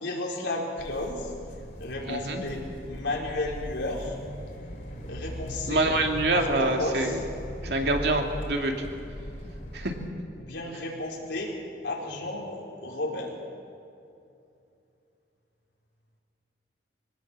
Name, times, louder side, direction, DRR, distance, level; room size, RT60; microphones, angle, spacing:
voice 1, 0.0-1.3 1.8-4.2 5.1-5.9 6.2-7.2 10.4-11.6 11.8-13.4, left 2 dB, 90° left, -2 dB, 4.6 m, -33 dB
sound 1, 0.8-10.1, equal, 50° left, 3.3 m, -39 dB
voice 2, 2.1-2.4 5.7-7.2 7.6-8.7 9.7-9.9, right 2 dB, 70° right, 3 dB, 2.4 m, -26 dB
23.5 x 18.0 x 7.5 m, 2.6 s
head